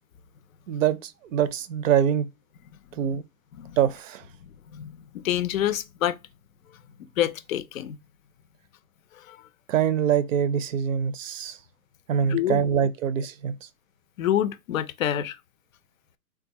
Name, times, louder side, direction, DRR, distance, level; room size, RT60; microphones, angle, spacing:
voice 1, 0.7-2.3 3.0-3.2 3.8-4.2 9.7-11.6 12.1-13.5, right 8 dB, 60° right, 0.5 m, -24 dB
voice 2, 4.7-6.2 7.2-8.0 9.1-9.5 12.2-12.7 14.2-15.4, left 11 dB, 65° left, 0.5 m, -27 dB
3.6 x 2.3 x 2.8 m
hypercardioid pair, 140°, 44 cm